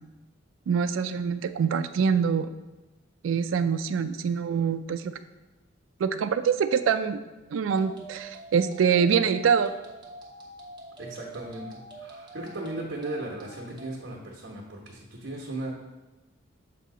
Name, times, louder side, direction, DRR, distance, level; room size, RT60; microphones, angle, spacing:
voice 1, 0.7-2.5 3.2-5.1 6.0-7.2 7.5-9.7, right 6 dB, 85° right, 11 dB, 0.3 m, -25 dB
sound 1, 7.7-14.0, right 2 dB, 25° right, 1.0 m, -45 dB
voice 2, 11.0-11.7 12.0-15.7, right 2 dB, 60° right, -5 dB, 1.1 m, -36 dB
6.9 x 2.7 x 5.0 m, 1.1 s
head